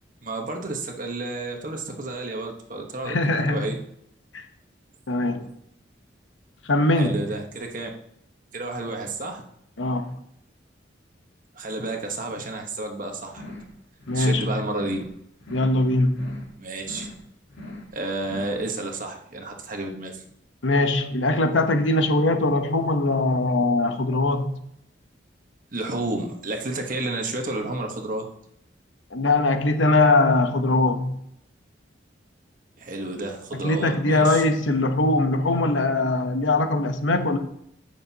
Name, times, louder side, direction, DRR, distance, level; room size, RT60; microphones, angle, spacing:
voice 1, 0.2-3.7 6.9-7.9 8.5-9.4 11.5-13.4 14.1-15.0 16.6-17.1 17.9-20.2 25.7-28.2 32.8-34.4, right 2 dB, 45° right, 1.2 m, -31 dB
voice 2, 3.0-3.7 4.3-4.4 5.1-5.5 6.7-7.2 9.8-10.1 14.1-14.5 15.5-16.4 20.6-24.5 29.1-31.2 33.6-37.4, left 2 dB, 90° left, 0.9 m, -21 dB
sound 1, 13.3-13.7 14.0-14.4 14.7-15.1 15.4-15.8 16.1-16.5 16.8-17.2 17.5-17.9 18.2-18.6, left 1 dB, 70° left, 1.7 m, -40 dB
14.5 x 6.5 x 2.9 m
head